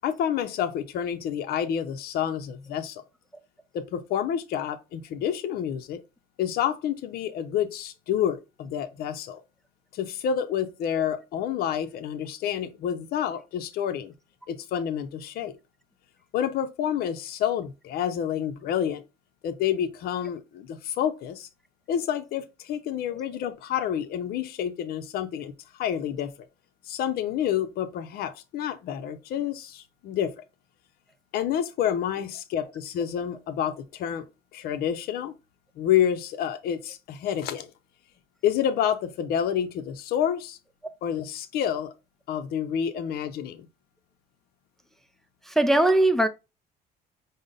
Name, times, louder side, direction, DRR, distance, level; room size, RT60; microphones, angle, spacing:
voice 1, 0.0-3.0 3.7-6.0 6.4-9.4 9.9-14.1 14.5-15.5 16.3-19.0 19.4-21.5 21.9-25.5 25.8-26.3 26.9-30.4 31.3-34.3 34.5-35.3 35.8-37.7 38.4-40.6 41.0-41.9 42.3-43.7, left 9 dB, 65° left, 0.5 m, -28 dB
voice 2, 45.5-46.3, right 1 dB, ahead, 0.3 m, -20 dB
5.0 x 2.0 x 3.7 m
cardioid pair, 110°, 17 cm